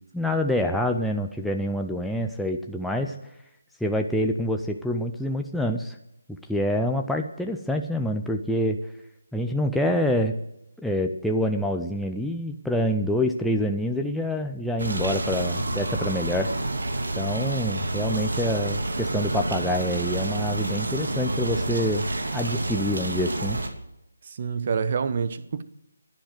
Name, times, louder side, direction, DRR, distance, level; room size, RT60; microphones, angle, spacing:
voice 1, 0.1-3.1 3.8-6.0 6.5-8.8 9.3-10.4 10.8-16.5 17.1-23.6, equal, ahead, 0.6 m, -26 dB
sound 1, 14.8-23.7, right 2 dB, 80° right, 2.7 m, -28 dB
voice 2, 24.3-25.6, right 6 dB, 40° right, 1.1 m, -27 dB
11.5 x 10.5 x 9.1 m
figure-of-eight pair, 165°, 0 cm